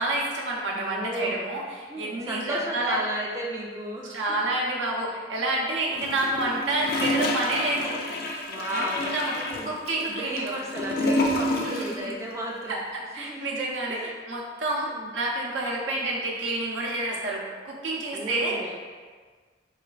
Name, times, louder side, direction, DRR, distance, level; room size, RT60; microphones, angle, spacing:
voice 1, 0.0-3.0 4.1-8.0 8.7-8.8 9.1-9.3 9.6-10.5 11.5-12.1 12.7-18.5, right 2 dB, 90° right, -2 dB, 0.7 m, -29 dB
voice 2, 0.7-1.4 1.9-4.2 8.5-9.7 10.1-12.8 13.2-13.6 13.9-14.1 14.8-15.1 18.1-18.7, right 1 dB, 15° right, -2 dB, 0.3 m, -34 dB
Gurgling / Toilet flush, 5.9-12.0 12.3-12.4, left 1 dB, 55° left, 0.4 m, -29 dB
3.9 x 3.1 x 2.4 m, 1.5 s
head